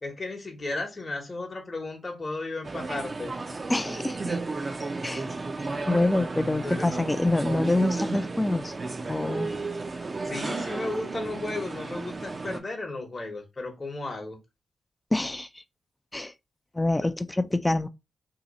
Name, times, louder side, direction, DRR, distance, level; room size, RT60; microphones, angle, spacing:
voice 1, 0.0-3.4 6.6-6.9 10.3-14.4 16.9-17.1, left 2 dB, 40° left, 0.9 m, -34 dB
sound 1, 2.6-12.6, right 3 dB, 45° right, 0.5 m, -33 dB
voice 2, 3.7-4.4 5.0-5.3 5.9-8.7 9.1-9.5 15.1-15.5 16.1-16.3 16.7-17.9, left 2 dB, 20° left, 0.3 m, -26 dB
2.8 x 2.3 x 3.9 m
supercardioid pair, 50°, 0 cm